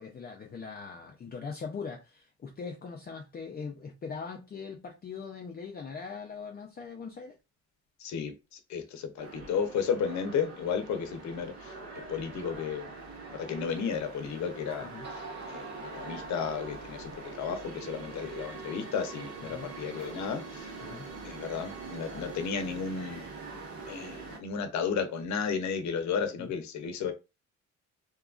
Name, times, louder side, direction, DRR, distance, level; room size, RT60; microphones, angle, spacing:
voice 1, 0.0-7.3 14.9-15.1 19.4-19.7 20.8-21.1 26.4-26.5, left 5 dB, 30° left, 0.5 m, -41 dB
voice 2, 8.0-11.8 12.1-12.9 13.3-20.9 21.2-23.2 23.9-27.1, left 6 dB, 65° left, 0.7 m, -33 dB
sound 1, 9.2-24.4, right 4 dB, 60° right, 1.6 m, -44 dB
sound 2, 13.9-14.0 14.7-14.8 15.0-17.5, right 2 dB, 35° right, 1.0 m, -45 dB
2.9 x 2.3 x 2.4 m
cardioid pair, 90°, 30 cm